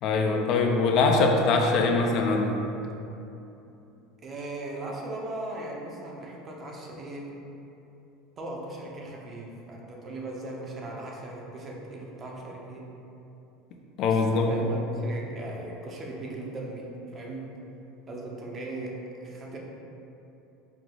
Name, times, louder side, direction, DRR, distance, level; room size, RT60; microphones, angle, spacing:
voice 1, 0.0-2.6 14.0-14.5, left 3 dB, 50° left, 2 dB, 0.4 m, -23 dB
voice 2, 4.2-7.3 8.4-12.9 14.1-17.6 18.1-19.6, right 2 dB, 30° right, -1 dB, 0.6 m, -38 dB
4.8 x 2.3 x 3.8 m, 2.9 s
supercardioid pair, 135°, 0 cm